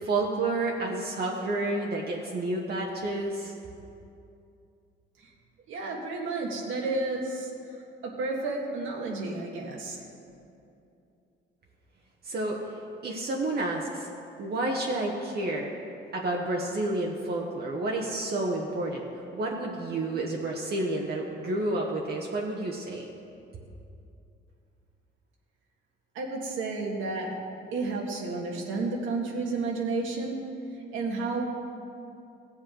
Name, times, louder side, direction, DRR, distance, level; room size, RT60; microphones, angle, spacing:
voice 1, 0.0-3.6 12.2-12.6 13.0-14.1 14.4-15.7 16.1-19.1 19.3-23.1, right 2 dB, 50° right, -1 dB, 1.1 m, -30 dB
voice 2, 5.7-7.5 8.0-10.0 26.1-27.3 27.7-30.4 30.9-31.4, right 3 dB, 80° right, -1 dB, 1.8 m, -31 dB
16.0 x 7.4 x 3.8 m, 2.7 s
cardioid pair, 90°, 20 cm